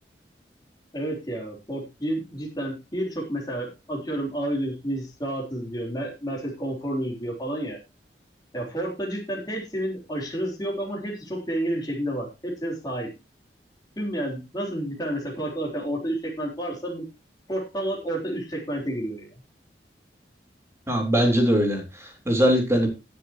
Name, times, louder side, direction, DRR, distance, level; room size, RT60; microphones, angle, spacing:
voice 1, 0.9-7.8 8.5-13.1 14.0-17.0 17.5-19.3, right 1 dB, 25° left, -1 dB, 3.7 m, -30 dB
voice 2, 20.9-22.9, equal, 15° right, 1 dB, 3.9 m, -21 dB
19.5 x 6.9 x 3.0 m, 0.26 s
head